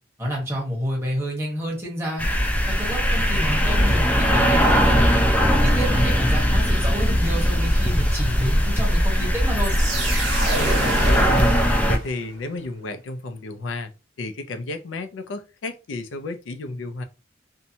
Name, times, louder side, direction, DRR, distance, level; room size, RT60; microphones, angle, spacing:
voice 1, 0.2-2.2 2.8-5.0 5.6-9.7, equal, 15° right, 1.1 m, -29 dB
sound 1, 2.2-12.0, equal, 10° left, 0.3 m, -20 dB
voice 2, 5.8-6.4 10.5-11.6 11.9-13.9 14.2-17.0, left 2 dB, 85° left, 0.4 m, -32 dB
sound 2, 9.6-12.4, right 2 dB, 80° right, 1.2 m, -28 dB
2.6 x 2.1 x 2.7 m
head